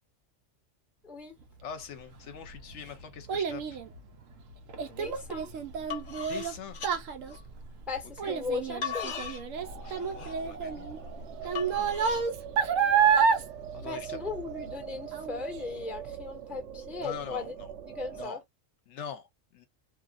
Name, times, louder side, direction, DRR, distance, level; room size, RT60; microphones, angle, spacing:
voice 1, 1.0-1.4 4.9-5.5 7.9-9.2 13.8-17.5 17.8-18.4, left 4 dB, ahead, 0.7 m, -38 dB
voice 2, 1.6-3.8 6.3-6.8 8.2-8.3 9.8-11.0 11.4-12.0 13.7-14.2 17.0-17.7 18.1-18.4 18.9-19.7, left 7 dB, 70° left, 0.9 m, -43 dB
Child speech kid speaking, 2.1-14.8 15.1-15.6 16.1-16.2, right 6 dB, 90° right, 1.0 m, -29 dB
sound 1, 5.1-5.3 5.7-7.8 8.4-12.3, left 7 dB, 50° left, 0.6 m, -39 dB
sound 2, 9.6-18.2, right 9 dB, 65° right, 0.9 m, -43 dB
2.7 x 2.4 x 2.4 m
omnidirectional pair, 1.3 m